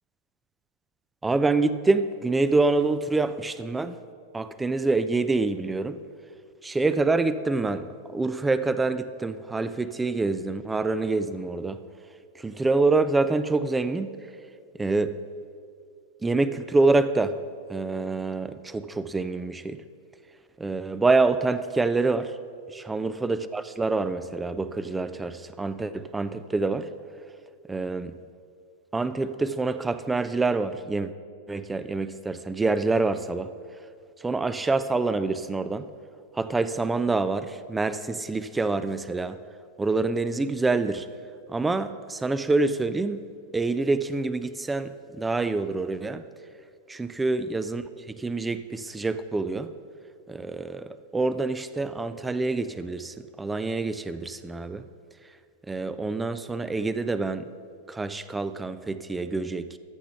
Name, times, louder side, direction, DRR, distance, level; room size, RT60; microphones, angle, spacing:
voice 1, 1.2-4.0 4.3-6.0 6.6-11.8 12.4-14.1 14.8-15.2 16.2-17.4 17.7-19.8 20.6-22.4 22.7-26.9 27.7-28.1 28.9-31.1 31.5-33.5 34.2-35.9 36.3-39.4 39.8-41.1 41.5-43.2 43.5-46.2 46.9-49.7 50.3-54.9 55.7-57.5 57.9-59.8, right 3 dB, 10° right, 12 dB, 0.4 m, -26 dB
13.5 x 5.0 x 5.8 m, 2.3 s
figure-of-eight pair, 90°, 0 cm